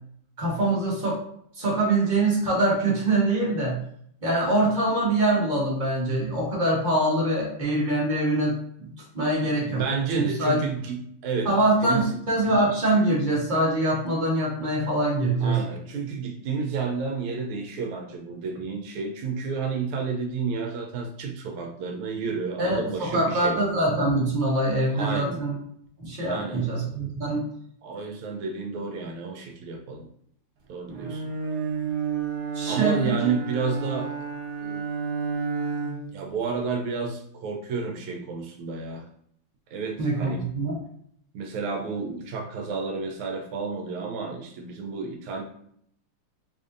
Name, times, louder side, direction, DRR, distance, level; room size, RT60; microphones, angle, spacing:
voice 1, 0.4-1.2 1.5-3.8 4.2-8.5 8.8-8.9 9.1-9.8 10.1-10.6 11.4-15.6 22.6-25.5 26.0-27.4 30.9-31.1 32.5-33.1 40.0-40.8, right 2 dB, 45° right, -5 dB, 0.6 m, -24 dB
voice 2, 9.6-11.5 11.8-12.1 15.4-23.6 24.9-25.4 26.3-26.7 27.8-30.1 30.7-31.3 32.7-34.1 34.6-34.9 36.1-39.1 39.7-40.5 41.3-45.4, right 4 dB, 85° right, 2 dB, 1.5 m, -31 dB
Bowed string instrument, 30.9-36.2, right 6 dB, 65° right, 1.3 m, -31 dB
4.9 x 2.6 x 2.5 m, 0.66 s
omnidirectional pair, 2.4 m